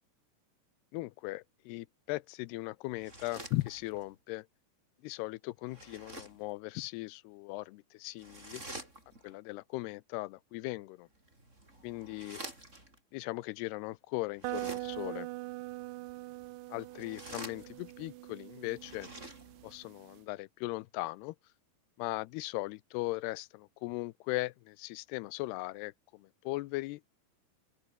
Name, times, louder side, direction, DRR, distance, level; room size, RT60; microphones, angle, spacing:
voice 1, 0.9-4.5 5.0-8.6 9.2-11.1 11.8-12.4 13.1-15.3 16.7-19.1 19.6-21.4 22.0-27.0, left 20 dB, 85° left, 2.7 m, -38 dB
sound 1, 2.9-4.1 5.6-6.5 8.2-9.3 11.1-13.0 14.3-15.2 16.8-18.1 18.7-19.8, right 1 dB, 15° right, 8.1 m, -48 dB
sound 2, 14.4-20.2, right 19 dB, 90° right, 1.9 m, -43 dB
open air
omnidirectional pair, 4.6 m